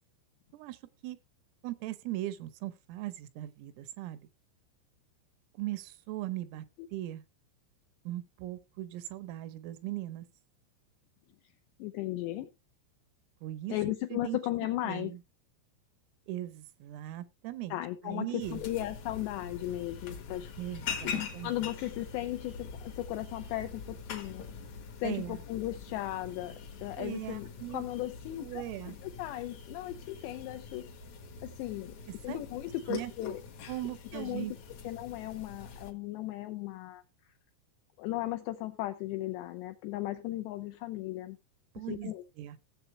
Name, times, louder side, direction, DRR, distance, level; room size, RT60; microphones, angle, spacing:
voice 1, 0.5-1.2 1.6-4.3 5.6-6.7 6.9-7.2 8.1-10.3 13.4-13.8 14.1-14.4 14.8-15.2 16.3-17.8 18.0-18.6 20.6-21.7 25.0-25.4 27.0-27.8 28.4-29.0 32.1-32.4 32.9-33.1 33.7-34.5 41.8-42.6, right 15 dB, 85° right, 3.6 m, -39 dB
voice 2, 11.8-12.5 13.7-15.1 17.7-20.5 21.0-24.4 25.0-26.6 26.8-28.6 29.0-30.9 31.4-32.0 32.2-33.4 34.1-34.6 34.8-37.0 38.0-41.4 41.9-42.2, left 15 dB, 85° left, 2.5 m, -36 dB
sound 1, 18.4-35.9, left 6 dB, 65° left, 1.9 m, -43 dB
15.5 x 7.7 x 3.1 m
omnidirectional pair, 5.8 m